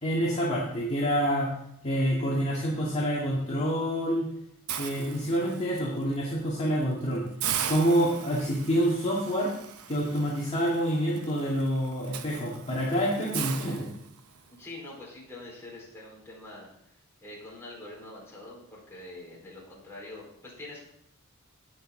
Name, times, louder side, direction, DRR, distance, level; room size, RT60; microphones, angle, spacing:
voice 1, 0.0-1.5 1.8-4.3 4.8-7.2 7.7-9.5 9.9-13.9, equal, 30° left, -6 dB, 2.0 m, -27 dB
Hiss, 4.7-5.8 6.3-6.5 6.8-6.9 7.4-14.5, right 9 dB, 85° right, 0.8 m, -38 dB
voice 2, 14.5-16.7 17.2-20.9, left 2 dB, 10° left, -5 dB, 4.3 m, -44 dB
18.0 x 6.4 x 3.8 m, 0.73 s
head